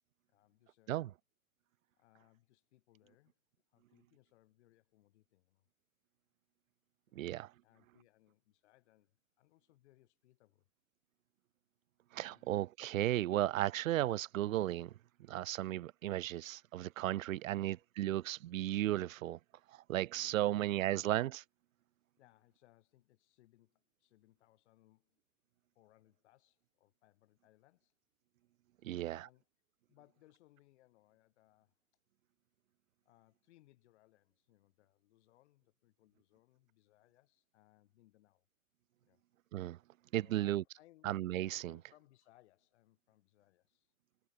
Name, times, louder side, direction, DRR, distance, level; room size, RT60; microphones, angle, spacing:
voice 1, 0.3-1.1 1.9-3.4 3.7-5.7 7.1-10.7 12.3-12.5 20.2-20.9 22.2-25.2 25.7-28.0 28.8-29.5 29.9-31.8 33.0-38.4 39.0-39.2 40.0-41.1 41.6-43.9, left 16 dB, 50° left, 7.9 m, -68 dB
voice 2, 7.1-7.5 12.1-14.9 15.3-19.4 19.7-21.4 28.8-29.3 39.5-39.8 40.1-40.6 41.0-41.7, right 14 dB, 70° right, 0.5 m, -35 dB
hypercardioid pair, 120°, 42 cm